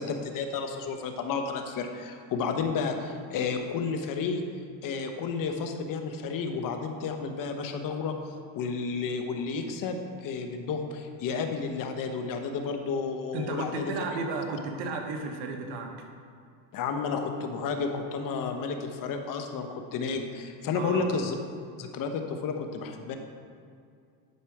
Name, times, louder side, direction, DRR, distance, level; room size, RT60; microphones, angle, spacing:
voice 1, 0.0-4.4 4.8-8.2 8.5-13.9 16.7-21.3 21.8-23.2, left 5 dB, 45° left, 5 dB, 1.0 m, -31 dB
voice 2, 13.3-15.9 20.7-21.1, right 3 dB, 65° right, 2 dB, 1.4 m, -33 dB
11.0 x 4.9 x 4.8 m, 2.3 s
cardioid pair, 130°, 45 cm